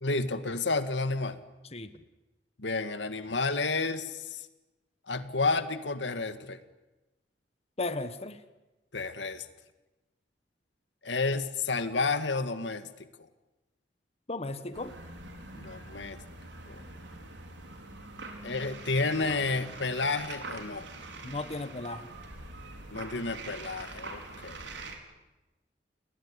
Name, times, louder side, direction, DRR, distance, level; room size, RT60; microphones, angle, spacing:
voice 1, 0.0-1.4 2.6-4.5 5.1-6.6 8.9-9.5 11.0-12.9 15.5-16.2 16.7-16.8 18.4-20.9 22.9-24.7, left 3 dB, 85° left, 10 dB, 1.9 m, -31 dB
voice 2, 7.8-8.4 14.3-14.9 21.2-22.1, left 2 dB, 35° left, 11 dB, 1.4 m, -35 dB
sound 1, 14.7-25.0, right 2 dB, 85° right, 4.9 m, -44 dB
30.0 x 20.0 x 9.9 m, 1.1 s
head